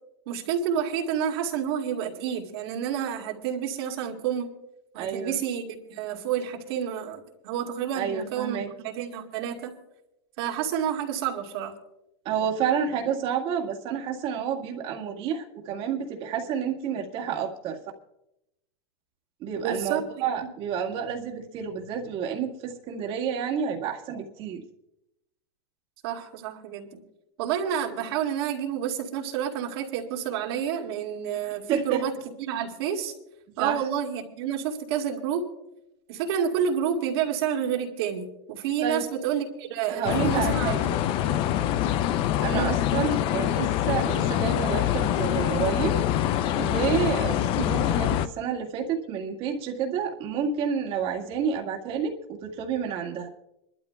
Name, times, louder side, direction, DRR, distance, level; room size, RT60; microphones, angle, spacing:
voice 1, 0.3-4.5 4.9-9.8 10.4-11.7 19.6-20.5 26.0-26.9 27.4-33.1 33.6-35.5 36.1-41.0 42.4-43.1, right 8 dB, 65° right, 1 dB, 2.2 m, -29 dB
voice 2, 5.0-5.4 8.0-8.7 12.3-17.8 19.4-24.6 31.7-32.0 33.6-33.8 38.8-39.0 39.9-40.9 42.4-46.0 46.6-52.1 52.4-53.3, right 7 dB, 40° right, 1 dB, 1.9 m, -29 dB
sound 1, 40.0-48.3, left 11 dB, 40° left, 0.5 m, -25 dB
27.0 x 12.5 x 2.3 m, 0.84 s
supercardioid pair, 140°, 14 cm